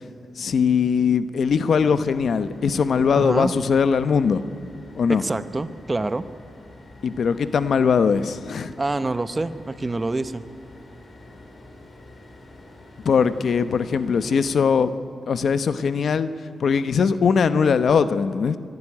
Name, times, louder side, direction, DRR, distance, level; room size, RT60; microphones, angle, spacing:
voice 1, 0.4-4.5 5.0-5.2 7.0-8.7 13.0-14.9 15.3-16.3 16.6-18.6, left 6 dB, 65° left, 13 dB, 0.9 m, -20 dB
sound 1, 1.8-14.5, left 2 dB, 40° left, 3.5 m, -47 dB
voice 2, 3.1-3.5 5.1-6.2 8.8-10.4, right 2 dB, 25° right, 13 dB, 0.8 m, -26 dB
23.0 x 12.0 x 9.9 m, 2.5 s
wide cardioid pair, 110°, 0 cm